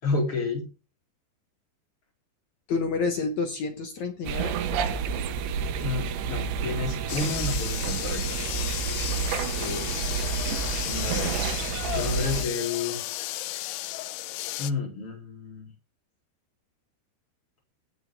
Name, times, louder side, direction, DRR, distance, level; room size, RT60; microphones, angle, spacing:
voice 1, 0.0-0.6 5.8-8.4 10.2-10.4 10.7-11.3 11.9-13.0 14.6-15.7, left 3 dB, 30° left, -1 dB, 5.0 m, -30 dB
voice 2, 2.7-4.5 9.3-9.9, left 4 dB, 70° left, 5 dB, 1.8 m, -30 dB
sound 1, 4.2-12.4, right 6 dB, 80° right, 3.2 m, -30 dB
sound 2, 7.1-14.7, left 16 dB, 85° left, 3.0 m, -33 dB
18.0 x 6.9 x 3.5 m, 0.31 s
omnidirectional pair, 5.0 m